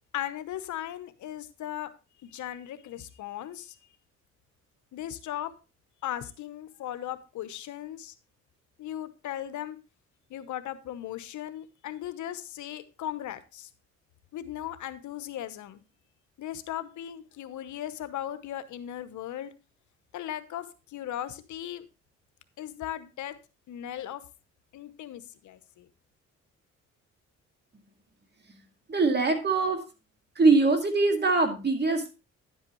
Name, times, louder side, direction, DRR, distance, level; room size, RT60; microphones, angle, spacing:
voice 1, 0.1-1.9 2.2-3.8 4.9-5.5 6.0-8.1 8.8-9.8 10.3-13.7 14.3-15.8 16.4-19.5 20.1-21.9 22.6-23.4 23.7-24.2 24.7-25.9, left 12 dB, 75° left, 12 dB, 0.9 m, -37 dB
voice 2, 28.9-29.8 30.4-32.1, right 3 dB, 35° right, 5 dB, 2.2 m, -22 dB
10.5 x 8.1 x 3.0 m, 0.29 s
cardioid pair, 90°, 30 cm